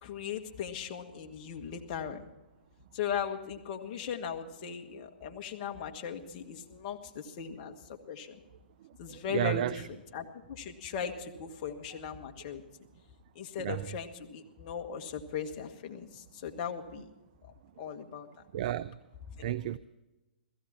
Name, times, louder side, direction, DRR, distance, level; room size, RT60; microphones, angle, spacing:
voice 1, 0.0-2.2 2.9-8.4 9.0-12.6 13.3-17.1 17.8-18.3 19.4-19.5, left 7 dB, 40° left, 1.5 m, -38 dB
voice 2, 9.3-9.8 13.6-13.8 18.5-18.9 19.4-19.8, right 12 dB, 45° right, 0.4 m, -31 dB
16.0 x 15.0 x 4.3 m
hypercardioid pair, 125°, 6 cm